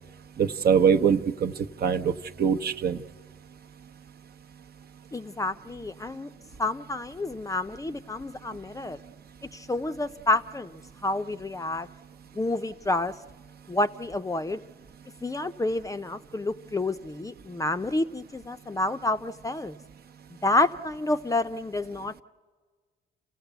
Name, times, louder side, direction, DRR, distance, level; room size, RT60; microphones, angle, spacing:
voice 1, 0.4-1.5 1.8-3.0, right 7 dB, 50° right, 7 dB, 0.8 m, -23 dB
voice 2, 5.1-6.3 6.6-9.0 9.5-11.9 12.3-13.1 13.7-14.6 15.2-19.8 20.4-22.2, left 2 dB, 15° left, 10 dB, 0.6 m, -29 dB
28.5 x 16.0 x 8.1 m, 1.5 s
cardioid pair, 90°, 20 cm